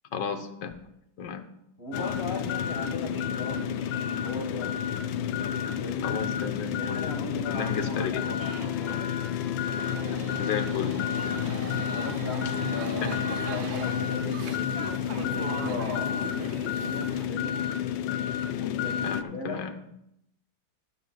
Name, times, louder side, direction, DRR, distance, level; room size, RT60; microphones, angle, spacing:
voice 1, 0.1-0.9 1.2-1.5 6.0-7.1 7.5-8.2 10.4-11.1 13.0-13.2 19.0-19.7, left 7 dB, 65° left, 7 dB, 1.6 m, -33 dB
voice 2, 1.8-4.8 5.7-6.2 6.7-8.6 11.9-14.4 15.1-17.7 18.5-19.7, left 2 dB, 35° left, 1 dB, 1.5 m, -38 dB
sound 1, 1.9-19.2, left 9 dB, 90° left, 1.4 m, -30 dB
sound 2, 8.4-9.1 9.4-13.7, right 2 dB, 75° right, 1.9 m, -40 dB
sound 3, 11.1-17.3, right 5 dB, 50° right, 0.9 m, -39 dB
20.0 x 9.0 x 2.3 m, 0.78 s
omnidirectional pair, 2.1 m